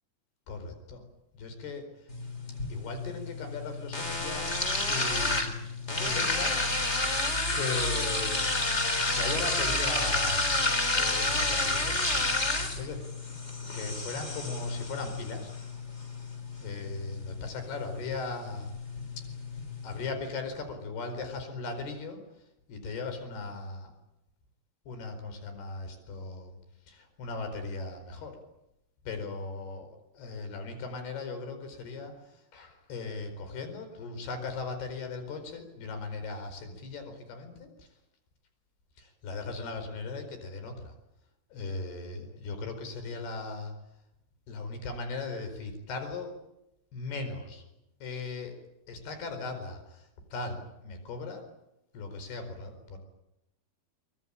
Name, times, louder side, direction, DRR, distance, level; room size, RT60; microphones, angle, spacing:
voice 1, 0.5-1.0 1.3-2.1 2.7-4.5 4.9-7.1 7.5-8.5 9.1-10.7 11.0-12.2 12.8-13.4 13.7-15.5 16.6-18.7 19.2-19.3 19.8-22.2 22.7-23.9 24.9-26.5 26.9-28.4 29.1-37.9 39.0-40.9 41.5-43.7 44.5-46.3 46.9-47.7 48.0-48.5 48.9-51.5 51.9-53.0, left 3 dB, 65° left, 8 dB, 6.6 m, -38 dB
sound 1, 2.1-20.1, left 2 dB, 20° left, 2.8 m, -30 dB
24.0 x 23.5 x 9.0 m, 0.88 s
omnidirectional pair, 5.0 m